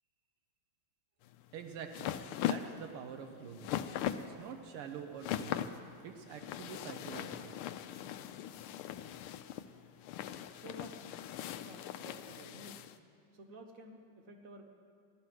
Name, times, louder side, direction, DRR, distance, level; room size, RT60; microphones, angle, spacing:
sound 1, 1.2-13.0, left 11 dB, 80° left, 1.4 m, -40 dB
voice 1, 1.5-2.2 2.4-3.8 4.2-5.7 6.0-7.6, right 7 dB, 90° right, 5 dB, 1.8 m, -46 dB
voice 2, 10.5-11.0 11.6-12.8 13.3-14.6, right 2 dB, 45° right, 3 dB, 1.4 m, -52 dB
16.0 x 11.5 x 6.1 m, 2.4 s
omnidirectional pair, 2.4 m